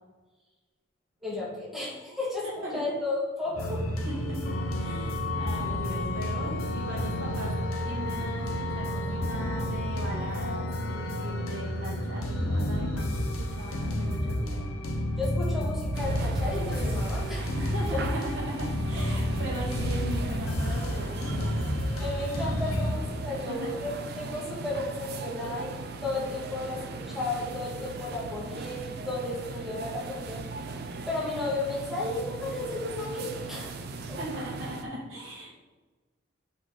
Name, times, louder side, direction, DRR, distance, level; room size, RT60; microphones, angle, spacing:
voice 1, 1.2-2.4 2.7-4.1 15.2-17.7 22.0-33.8 34.1-34.2, left 2 dB, ahead, -7 dB, 1.8 m, -34 dB
sound 1, 3.5-22.9, equal, 85° left, 0.8 m, -31 dB
voice 2, 4.0-7.5 7.9-14.8 16.8-16.9 17.6-21.6 23.4-23.7 33.9-35.6, equal, 70° right, -6 dB, 1.9 m, -39 dB
sound 2, 4.4-12.8, left 4 dB, 55° left, 0.4 m, -37 dB
sound 3, 15.9-34.8, right 3 dB, 50° right, 0.5 m, -38 dB
6.0 x 5.2 x 3.8 m, 1.3 s
head